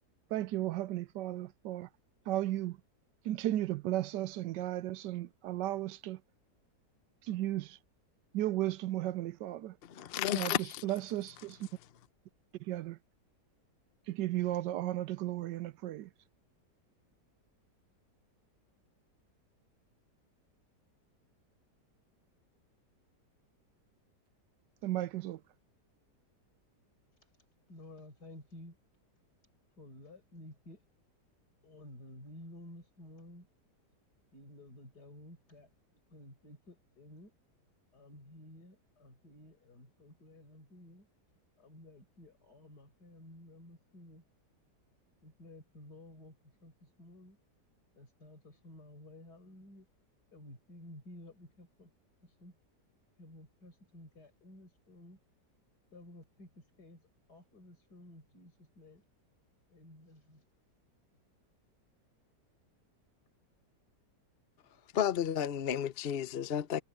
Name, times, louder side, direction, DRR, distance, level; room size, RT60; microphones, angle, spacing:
voice 1, 0.3-1.9 2.3-2.8 3.2-6.2 7.2-7.8 8.3-9.8 10.3-10.5 10.8-11.7 12.6-13.0 14.1-16.1 24.8-25.4, right 14 dB, 85° right, 1.3 m, -35 dB
voice 2, 9.8-10.8 64.9-66.8, left 9 dB, 50° left, 0.7 m, -32 dB
voice 3, 27.7-28.8 29.8-30.8 31.6-33.5 34.3-37.3 37.9-41.1 41.6-44.2 45.2-47.4 48.0-49.9 50.3-51.9 52.2-52.6 53.2-55.2 55.9-59.0 59.7-60.4, left 1 dB, 70° left, 6.7 m, -54 dB
omnidirectional pair, 1.8 m